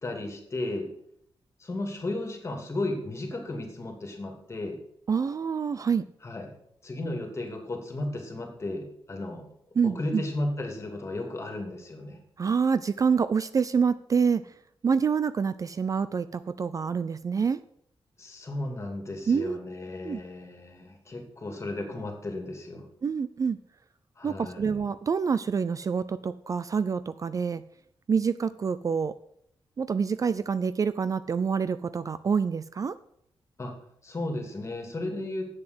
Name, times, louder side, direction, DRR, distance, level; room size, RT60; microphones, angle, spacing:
voice 1, 0.0-0.9 1.6-4.8 6.2-6.5 6.8-9.4 9.8-12.2 18.2-22.8 24.2-24.8 33.6-33.7 34.0-35.6, left 2 dB, 30° left, 3 dB, 2.7 m, -34 dB
voice 2, 5.1-6.0 9.8-10.2 12.4-14.4 14.8-17.6 19.3-19.6 20.0-20.2 23.0-23.6 24.2-27.6 28.1-29.2 29.8-33.0, right 6 dB, 40° right, 15 dB, 0.4 m, -27 dB
7.9 x 7.1 x 7.9 m, 0.71 s
wide cardioid pair, 120°, 9 cm